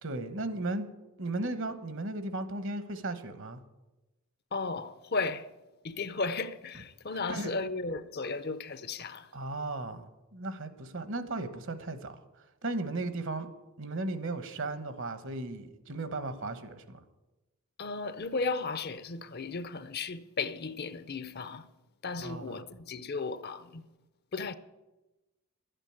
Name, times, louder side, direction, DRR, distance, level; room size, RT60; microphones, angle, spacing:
voice 1, 0.0-0.9 1.2-3.6 7.3-7.5 9.3-13.5 13.8-17.0 22.2-22.6, right 2 dB, 60° right, 1.2 m, -36 dB
voice 2, 4.5-5.5 5.8-9.3 17.8-21.7 22.0-23.8 24.3-24.5, left 4 dB, 45° left, 0.7 m, -35 dB
12.0 x 9.1 x 8.8 m
head